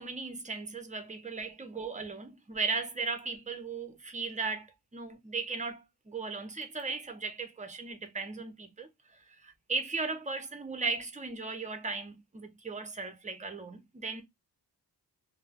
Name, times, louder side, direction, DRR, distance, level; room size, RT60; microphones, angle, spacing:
voice 1, 0.0-4.7 4.9-8.9 9.3-14.2, right 4 dB, 20° right, 0.5 m, -37 dB
2.2 x 2.0 x 3.3 m
wide cardioid pair, 100°, 42 cm